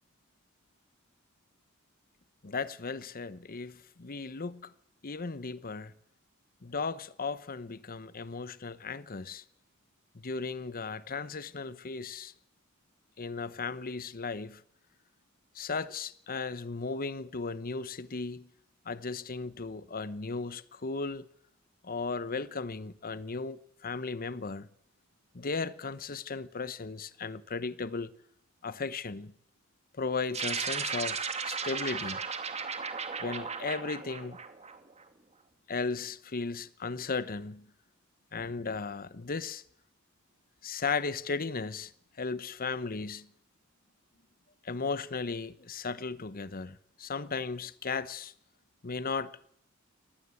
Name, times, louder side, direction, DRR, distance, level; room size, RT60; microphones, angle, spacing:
voice 1, 2.4-4.7 5.0-5.9 6.6-9.4 10.1-12.3 13.2-14.6 15.5-18.5 18.8-21.3 21.8-24.7 25.3-28.1 28.6-29.3 30.0-32.2 33.2-34.4 35.7-37.7 38.3-39.6 40.6-41.9 42.2-43.3 44.6-48.3 48.8-49.4, left 4 dB, 45° left, 0.9 m, -36 dB
sound 1, 30.3-35.0, right 5 dB, 30° right, 2.6 m, -35 dB
24.5 x 19.5 x 8.4 m
head